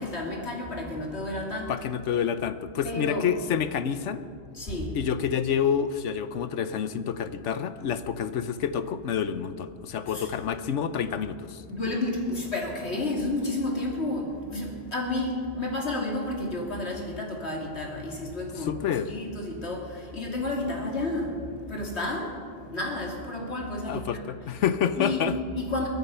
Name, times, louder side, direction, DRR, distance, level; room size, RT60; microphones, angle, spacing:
voice 1, 0.0-1.7 2.8-3.3 4.5-5.0 10.1-10.3 11.7-18.8 19.1-22.4 22.7-24.6 24.9-25.2 25.5-25.9, left 2 dB, 60° left, 0 dB, 2.7 m, -31 dB
voice 2, 1.7-4.2 4.9-11.6 18.6-19.1 23.9-25.4, left 8 dB, 80° left, 12 dB, 1.1 m, -28 dB
22.0 x 9.5 x 5.6 m, 2.2 s
omnidirectional pair, 1.2 m